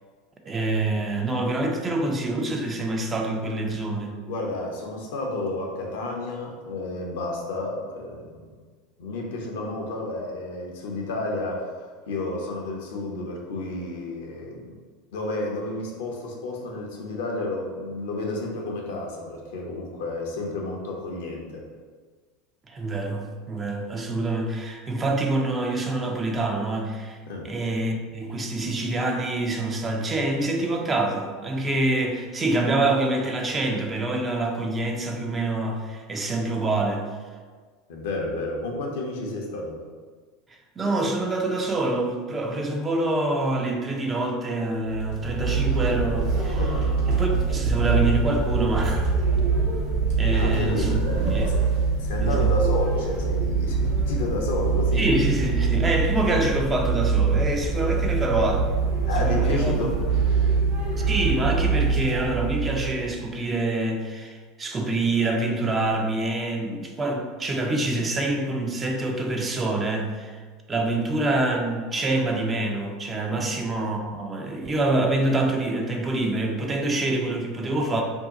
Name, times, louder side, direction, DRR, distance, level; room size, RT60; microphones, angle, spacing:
voice 1, 0.5-4.2 22.7-27.2 27.4-37.1 40.8-46.6 47.1-49.1 49.6-49.7 50.2-51.0 51.3-51.5 52.2-52.6 54.9-58.6 59.2-59.9 61.1-70.4 70.7-78.0, right 2 dB, 25° right, 2 dB, 0.5 m, -26 dB
voice 2, 4.3-8.4 9.0-14.8 15.1-21.7 27.3-27.5 37.9-39.8 46.6-46.9 50.3-51.0 52.0-55.0 57.9-58.0 59.1-60.0 73.3-73.5, left 2 dB, 70° left, -1 dB, 0.6 m, -31 dB
sound 1, 44.9-63.1, right 4 dB, 60° right, 0.9 m, -24 dB
2.7 x 2.2 x 3.7 m, 1.5 s
hypercardioid pair, 80°, 0 cm